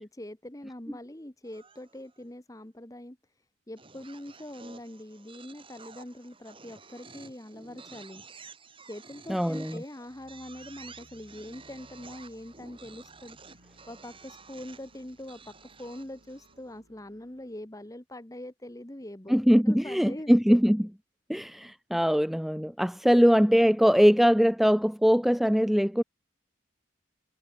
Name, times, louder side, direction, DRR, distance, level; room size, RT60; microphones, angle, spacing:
voice 1, 0.0-3.2 3.7-8.2 8.9-13.6 13.9-15.5 15.8-19.3 19.6-20.6 23.0-23.3, left 1 dB, 15° left, 1.1 m, -43 dB
sound 1, 1.4-2.2 3.8-16.7, right 4 dB, 25° right, 6.3 m, -51 dB
voice 2, 9.3-9.8 19.3-20.9 21.3-26.0, equal, ahead, 0.4 m, -22 dB
sound 2, 10.0-17.7, equal, 70° right, 5.5 m, -61 dB
head